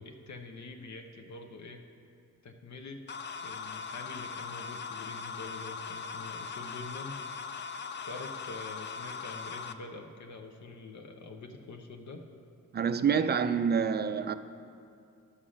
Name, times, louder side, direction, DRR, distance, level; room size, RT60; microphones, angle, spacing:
voice 1, 0.0-1.8 2.4-3.0 3.4-7.2 8.0-12.2, left 3 dB, 60° left, 0.8 m, -45 dB
sound 1, 3.1-9.7, left 5 dB, 35° left, 0.4 m, -40 dB
voice 2, 12.7-14.3, right 6 dB, 30° right, 0.4 m, -27 dB
11.5 x 5.6 x 6.3 m
cardioid pair, 120°, 33 cm